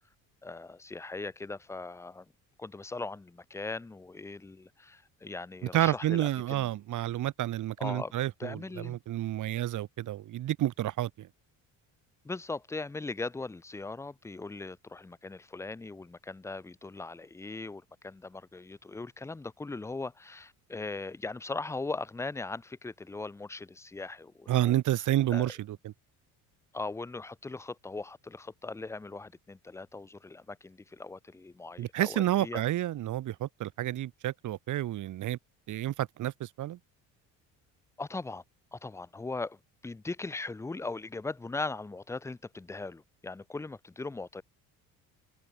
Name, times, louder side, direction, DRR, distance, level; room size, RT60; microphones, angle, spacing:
voice 1, 0.4-2.2 2.6-6.7 7.8-8.1 8.4-9.0 12.2-24.8 25.3-25.5 26.7-32.6 38.0-38.4 38.7-44.4, left 3 dB, 10° left, 0.4 m, -39 dB
voice 2, 5.7-11.3 24.5-25.9 31.8-35.4 35.7-36.8, right 13 dB, 50° right, 0.8 m, -30 dB
supercardioid pair, 70°, 39 cm